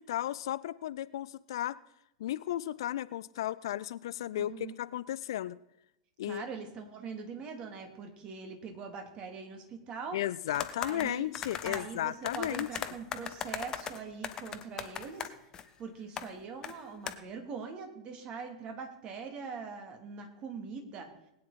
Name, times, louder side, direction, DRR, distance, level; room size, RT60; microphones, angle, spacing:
voice 1, 0.0-1.8 2.2-5.6 6.2-6.4 10.1-12.7, left 13 dB, 60° left, 0.4 m, -34 dB
voice 2, 4.4-4.7 6.2-10.2 10.7-11.3 11.6-15.3 15.8-21.1, right 5 dB, 35° right, 2.9 m, -42 dB
sound 1, 10.5-11.8 12.3-15.6 16.2-16.3 16.6-16.7 17.1-17.2, left 8 dB, 25° left, 1.1 m, -38 dB
20.0 x 9.5 x 4.3 m
figure-of-eight pair, 90°, 3 cm